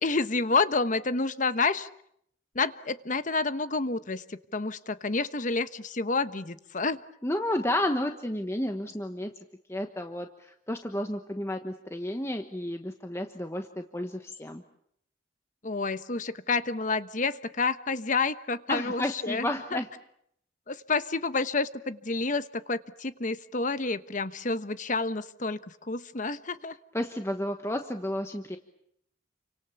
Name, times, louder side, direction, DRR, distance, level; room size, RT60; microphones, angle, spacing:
voice 1, 0.0-1.9 2.5-7.0 15.6-19.8 20.7-25.6 25.9-26.8, left 3 dB, 45° left, 12 dB, 1.1 m, -29 dB
voice 2, 7.2-9.3 9.7-14.6 18.7-19.9 26.9-28.6, left 1 dB, 15° left, 5 dB, 1.2 m, -31 dB
29.5 x 25.0 x 7.1 m, 0.72 s
head